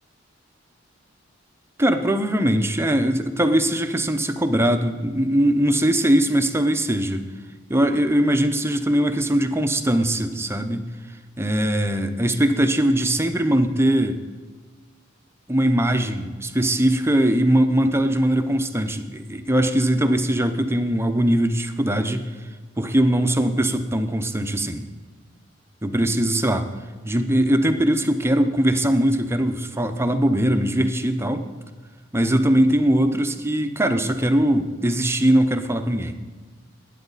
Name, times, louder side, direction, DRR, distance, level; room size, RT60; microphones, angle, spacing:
voice 1, 1.8-7.3 7.7-10.9 11.4-14.2 15.5-22.3 22.8-24.8 25.8-26.7 27.0-31.5 32.1-36.2, right 1 dB, 15° right, 7 dB, 0.7 m, -21 dB
20.0 x 9.3 x 4.1 m, 1.4 s
head